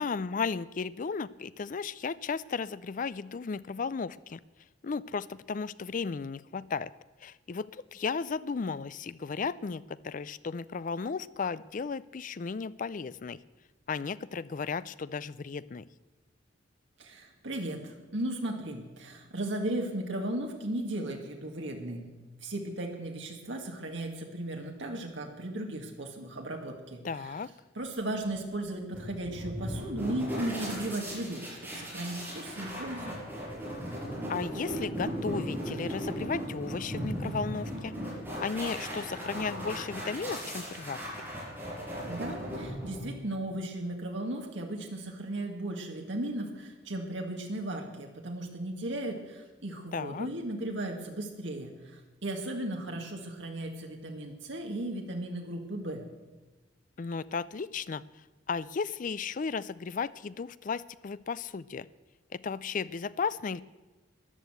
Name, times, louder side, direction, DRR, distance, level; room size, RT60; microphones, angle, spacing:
voice 1, 0.0-4.4 4.8-6.9 7.2-13.4 13.9-15.8 27.0-27.5 34.3-37.9 38.4-41.0 49.9-50.3 57.0-58.0 58.5-61.9 62.3-63.6, left 5 dB, 45° left, 18 dB, 0.4 m, -34 dB
voice 2, 17.0-22.0 22.4-27.3 27.8-31.4 31.7-33.2 42.1-56.0, right 1 dB, 75° right, 2 dB, 2.2 m, -36 dB
sound 1, 28.9-43.3, equal, 10° right, 5.9 m, -37 dB
13.5 x 11.0 x 8.0 m, 1.2 s
head